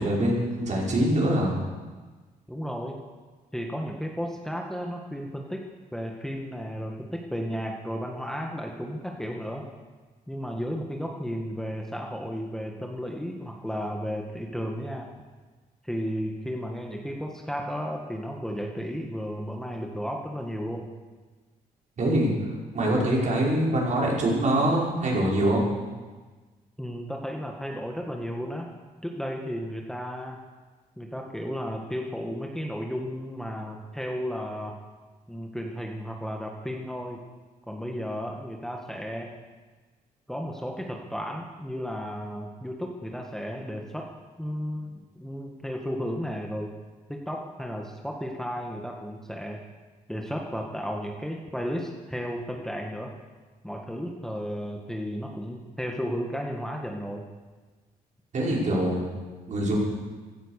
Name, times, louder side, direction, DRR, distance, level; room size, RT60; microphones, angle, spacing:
voice 1, 0.0-1.6 22.0-25.7 58.3-59.0 59.5-59.8, right 1 dB, 55° right, -4 dB, 5.6 m, -24 dB
voice 2, 2.5-3.0 3.5-5.6 5.9-9.6 10.3-15.1 15.8-20.9 26.8-28.7 29.0-30.4 31.0-34.8 35.3-37.2 37.7-39.3 40.3-44.1 44.4-46.7 47.1-49.6 50.1-53.1 53.6-57.3, equal, 5° left, 1 dB, 1.9 m, -33 dB
16.0 x 12.0 x 6.7 m, 1.3 s
cardioid pair, 70°, 15 cm